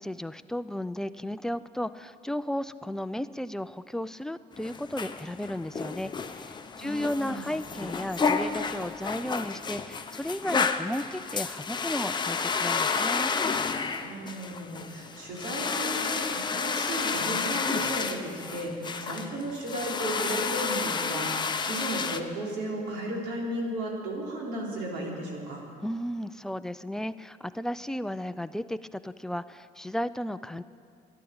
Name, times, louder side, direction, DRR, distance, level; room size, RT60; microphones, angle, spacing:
voice 1, 0.0-13.3 25.8-30.6, left 1 dB, 5° left, 12 dB, 0.4 m, -34 dB
sound 1, 4.5-22.2, left 5 dB, 25° left, 0.8 m, -31 dB
voice 2, 6.8-7.5 14.0-25.6, right 1 dB, 90° right, -2 dB, 3.5 m, -34 dB
12.5 x 11.5 x 8.7 m, 2.3 s
cardioid pair, 110°, 17 cm